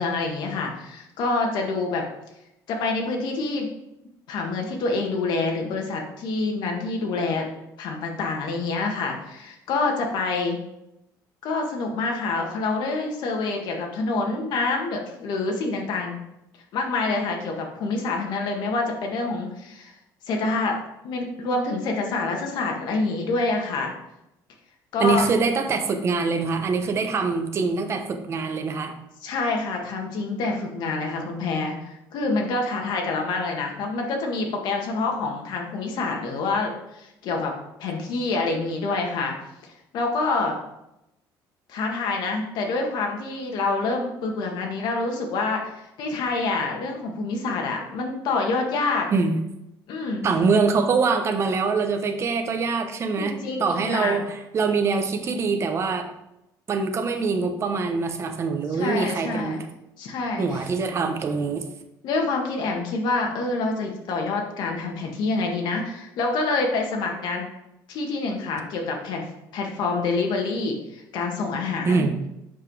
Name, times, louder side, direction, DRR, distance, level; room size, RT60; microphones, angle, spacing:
voice 1, 0.0-2.0 2.7-3.7 4.3-7.5 7.8-10.6 11.4-16.2 16.7-19.9 20.3-20.8 21.0-23.9 24.9-25.2 29.2-37.5 37.8-39.3 39.6-40.6 41.7-49.1 49.9-50.3 53.2-54.2 58.7-59.6 60.0-60.7 62.0-67.5 67.9-72.0, left 3 dB, 65° left, 1 dB, 1.7 m, -27 dB
voice 2, 25.0-29.0 49.1-49.4 50.2-56.1 56.7-59.6 60.4-61.7 71.8-72.2, right 4 dB, 35° right, 6 dB, 1.0 m, -24 dB
7.2 x 5.5 x 4.7 m, 0.87 s
cardioid pair, 140°, 8 cm